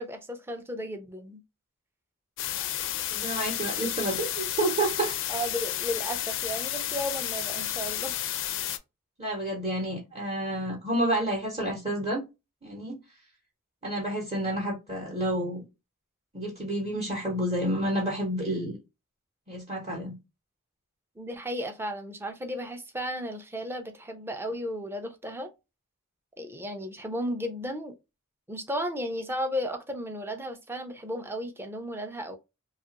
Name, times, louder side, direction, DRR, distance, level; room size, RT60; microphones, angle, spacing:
voice 1, 0.0-1.4 5.3-8.2 21.2-25.5 26.4-27.9 28.5-32.4, equal, 10° right, 0.4 m, -34 dB
sound 1, 2.4-8.8, left 12 dB, 60° left, 0.4 m, -32 dB
voice 2, 3.1-5.2 9.2-12.2 12.6-13.0 13.8-15.6 16.3-18.8 19.5-20.1, right 1 dB, 30° right, 0.9 m, -29 dB
2.8 x 2.4 x 2.8 m
head